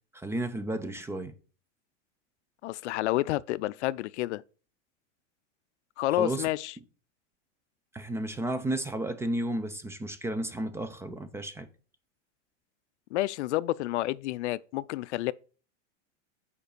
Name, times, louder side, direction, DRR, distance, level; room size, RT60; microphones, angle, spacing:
voice 1, 0.1-1.3 6.2-6.5 7.9-11.7, right 1 dB, 5° right, 0.5 m, -32 dB
voice 2, 2.6-4.4 6.0-6.7 13.1-15.3, left 16 dB, 70° left, 0.5 m, -29 dB
6.6 x 5.2 x 6.8 m
supercardioid pair, 130°, 37 cm